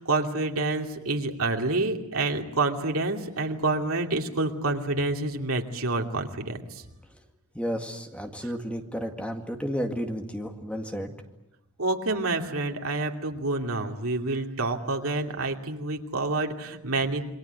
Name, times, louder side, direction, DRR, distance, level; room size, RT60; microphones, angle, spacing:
voice 1, 0.0-6.8 11.8-17.3, right 2 dB, 70° right, 3 dB, 2.7 m, -28 dB
voice 2, 7.5-11.1, equal, 5° left, 5 dB, 2.1 m, -32 dB
28.0 x 23.0 x 8.2 m, 0.89 s
head